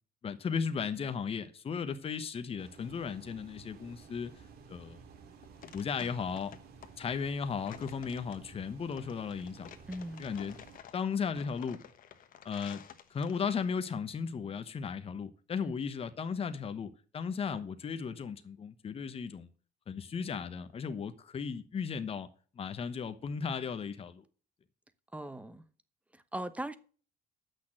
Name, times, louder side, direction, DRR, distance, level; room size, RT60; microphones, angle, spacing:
voice 1, 0.2-4.3 4.7-5.0 5.7-6.5 7.0-9.7 10.2-10.6 10.9-11.8 12.4-12.8 13.1-19.5 19.9-22.3 22.5-24.2, left 6 dB, 35° left, 1.0 m, -36 dB
sound 1, 2.6-10.8, right 6 dB, 70° right, 2.4 m, -54 dB
sound 2, 5.1-13.7, left 9 dB, 55° left, 1.2 m, -52 dB
voice 2, 9.9-10.3 15.6-15.7 25.1-25.6 26.1-26.8, right 1 dB, 10° right, 0.9 m, -39 dB
8.3 x 6.3 x 7.6 m
cardioid pair, 110°, 17 cm